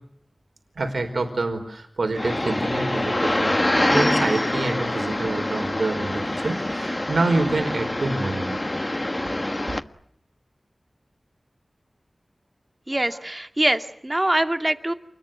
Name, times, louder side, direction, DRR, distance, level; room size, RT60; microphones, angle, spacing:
voice 1, 0.8-8.6 9.7-9.8, right 2 dB, 90° right, 6 dB, 4.8 m, -27 dB
sound 1, 2.2-9.8, left 1 dB, 30° left, 1.4 m, -25 dB
voice 2, 12.9-14.9, right 1 dB, 25° right, 8 dB, 2.3 m, -23 dB
29.5 x 21.0 x 9.6 m, 0.72 s
wide cardioid pair, 60°, 0 cm